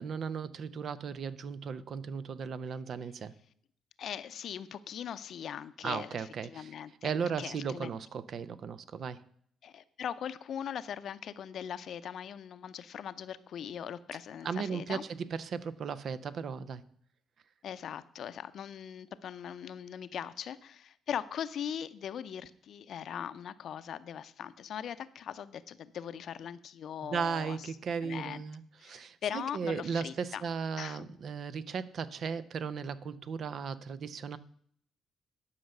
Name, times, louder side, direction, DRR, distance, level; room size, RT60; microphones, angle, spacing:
voice 1, 0.0-3.3 5.8-6.7 7.0-9.2 14.4-16.8 27.0-34.4, right 6 dB, 60° right, 15 dB, 0.6 m, -36 dB
voice 2, 4.0-7.1 7.4-7.9 9.6-15.0 17.6-27.7 28.0-28.4 28.8-30.4 30.8-31.0, left 9 dB, 65° left, 14 dB, 0.6 m, -40 dB
11.5 x 5.8 x 6.5 m, 0.63 s
cardioid pair, 90°, 0 cm